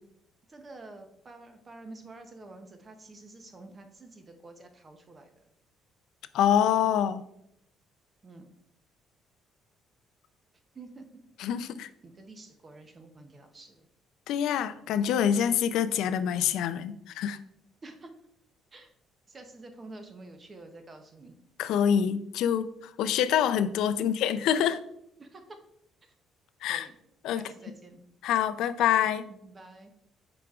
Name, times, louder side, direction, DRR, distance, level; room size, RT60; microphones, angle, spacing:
voice 1, 0.5-5.4 8.2-8.5 10.7-11.0 12.0-13.9 17.8-18.1 18.7-18.9 19.3-21.3 24.0-24.1 25.2-25.4 26.0-26.1 26.7-27.0 27.3-28.0 29.3-29.9, right 2 dB, 20° right, 6 dB, 0.6 m, -48 dB
voice 2, 6.3-7.2 11.4-11.9 14.3-17.4 21.6-24.8 26.6-26.9 27.2-27.4 28.2-29.3, left 9 dB, 70° left, 13 dB, 0.3 m, -26 dB
8.3 x 4.9 x 2.3 m, 0.76 s
cardioid pair, 175°, 0 cm